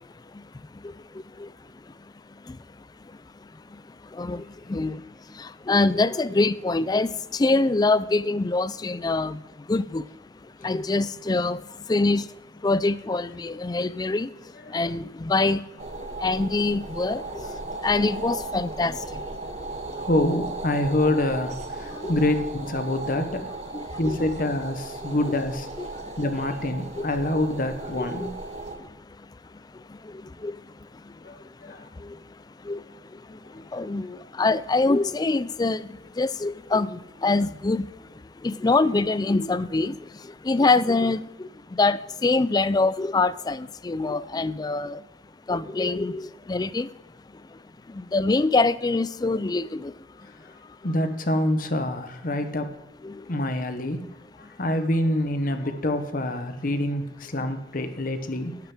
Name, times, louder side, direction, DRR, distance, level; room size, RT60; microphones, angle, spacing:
voice 1, 4.7-5.0 5.7-9.4 9.7-10.0 10.6-11.6 11.9-12.2 12.6-14.3 14.7-15.6 16.2-17.2 17.8-19.0 22.0-22.2 23.7-24.2 25.8-25.9 27.0-27.1 28.0-28.3 30.4-30.5 32.7-32.8 33.7-35.8 36.2-37.9 38.4-40.0 40.5-45.0 45.5-46.9 48.0-49.9 53.0-53.1, left 3 dB, 20° left, 17 dB, 0.4 m, -24 dB
sound 1, 15.8-28.8, right 2 dB, 40° right, 1.2 m, -36 dB
voice 2, 19.9-23.5 24.0-25.7 26.2-28.3 31.2-31.9 33.7-33.8 50.3-50.5 50.8-52.7 53.3-54.1 54.4-58.6, left 1 dB, 50° left, 7 dB, 1.2 m, -26 dB
11.5 x 6.9 x 8.9 m, 0.99 s
head